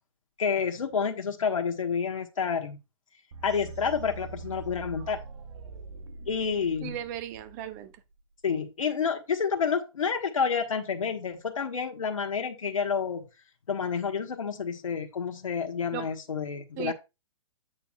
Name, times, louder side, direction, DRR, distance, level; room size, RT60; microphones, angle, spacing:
voice 1, 0.4-2.8 3.4-5.2 6.3-7.0 8.4-13.2 13.7-16.9, left 6 dB, 90° left, 1.3 m, -29 dB
sound 1, 3.3-8.2, right 4 dB, 65° right, 1.1 m, -43 dB
voice 2, 6.8-7.9 15.9-16.1 16.8-16.9, right 11 dB, 35° right, 1.0 m, -36 dB
8.7 x 6.9 x 2.3 m
hypercardioid pair, 145°, 17 cm